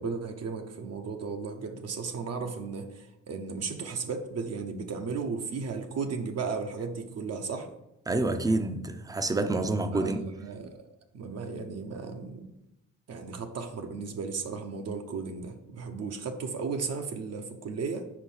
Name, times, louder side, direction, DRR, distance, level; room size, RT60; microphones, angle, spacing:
voice 1, 0.0-7.7 9.9-10.8 11.1-12.5 13.1-18.0, right 5 dB, 55° right, 0.8 m, -35 dB
voice 2, 8.1-10.2, right 2 dB, 10° right, 0.5 m, -28 dB
4.8 x 4.5 x 5.5 m
cardioid pair, 90°, 30 cm